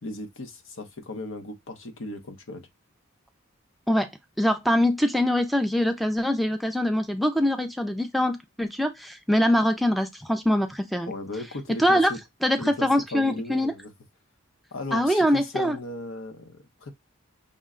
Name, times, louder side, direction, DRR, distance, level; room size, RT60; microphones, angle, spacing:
voice 1, 0.0-2.7 11.1-12.2 12.6-13.9 14.7-16.9, left 2 dB, 75° left, 0.9 m, -36 dB
voice 2, 4.4-11.1 11.7-12.1 12.4-13.7 14.9-15.8, equal, ahead, 0.3 m, -23 dB
5.4 x 2.2 x 3.7 m
head